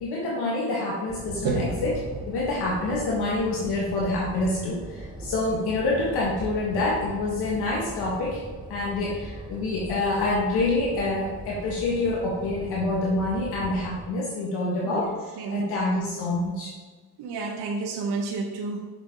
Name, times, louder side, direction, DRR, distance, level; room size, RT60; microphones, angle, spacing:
voice 1, 0.0-2.0 2.3-8.4 8.7-16.7, left 2 dB, 75° left, -5 dB, 1.9 m, -27 dB
sound 1, 1.1-14.1, right 2 dB, 10° right, 0.6 m, -40 dB
voice 2, 1.4-1.9 14.8-15.0 15.4-15.8 17.2-18.8, right 3 dB, 80° right, -1 dB, 1.1 m, -29 dB
6.8 x 6.5 x 3.8 m, 1.4 s
cardioid pair, 130°, 40 cm